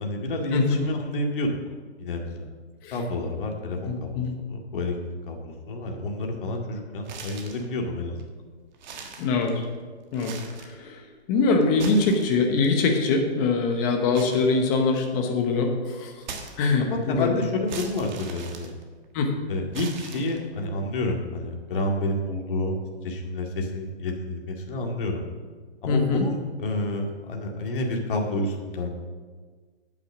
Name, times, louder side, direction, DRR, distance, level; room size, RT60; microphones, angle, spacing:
voice 1, 0.0-1.6 2.0-2.5 2.9-4.2 4.5-4.9 5.3-8.2 16.8-18.7 19.5-22.7 23.0-25.2 25.8-29.0, left 1 dB, 50° left, 1 dB, 2.1 m, -29 dB
voice 2, 3.8-4.4 9.2-9.6 10.1-10.3 10.6-16.2 16.6-17.4 19.1-19.3 25.9-26.3, left 4 dB, 20° left, 3 dB, 1.0 m, -23 dB
sound 1, 7.0-7.7 8.2-8.3 8.7-9.8 10.1-10.8 11.6-12.7 14.1-15.2 16.2-17.0 17.7-19.2 19.7-20.6, right 5 dB, 40° right, 1.5 m, -40 dB
9.2 x 7.6 x 6.1 m, 1.5 s
hypercardioid pair, 165°, 33 cm